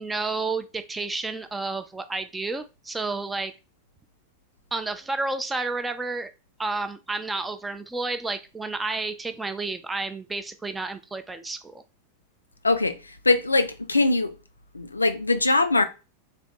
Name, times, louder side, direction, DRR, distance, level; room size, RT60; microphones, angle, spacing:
voice 1, 0.0-3.5 4.7-6.3 6.6-11.8, right 3 dB, 10° right, 0.3 m, -31 dB
voice 2, 12.6-14.3 14.7-15.8, left 3 dB, 80° left, 0.3 m, -22 dB
3.3 x 2.1 x 3.7 m
figure-of-eight pair, 90°, 0 cm